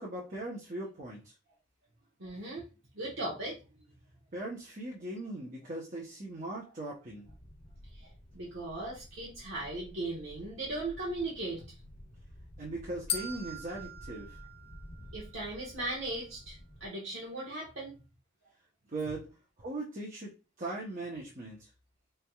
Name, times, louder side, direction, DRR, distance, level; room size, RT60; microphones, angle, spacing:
voice 1, 0.0-1.3 4.3-7.3 12.6-14.4 18.9-19.3 19.6-21.7, right 2 dB, 40° right, -4 dB, 0.9 m, -39 dB
voice 2, 2.2-2.7 2.9-3.6 7.9-11.8 15.1-18.0, right 2 dB, 85° right, -5 dB, 1.2 m, -38 dB
sound 1, 7.2-16.9, equal, 90° left, 1.1 m, -52 dB
sound 2, 13.1-15.3, left 5 dB, 30° left, 0.5 m, -40 dB
4.3 x 3.4 x 2.3 m, 0.32 s
head